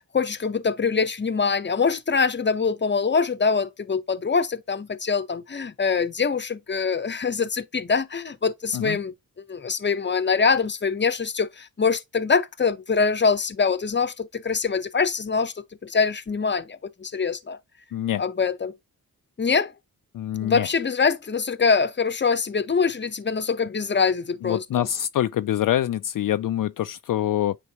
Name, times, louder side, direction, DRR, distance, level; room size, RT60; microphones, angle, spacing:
voice 1, 0.0-9.1 9.5-15.5 15.8-17.6 18.2-18.7 19.4-19.7 20.4-24.9, left 5 dB, 30° left, 0.9 m, -24 dB
voice 2, 17.9-18.2 20.1-20.7 24.4-27.6, left 12 dB, 65° left, 0.5 m, -25 dB
9.6 x 4.4 x 2.9 m
cardioid pair, 80°, 36 cm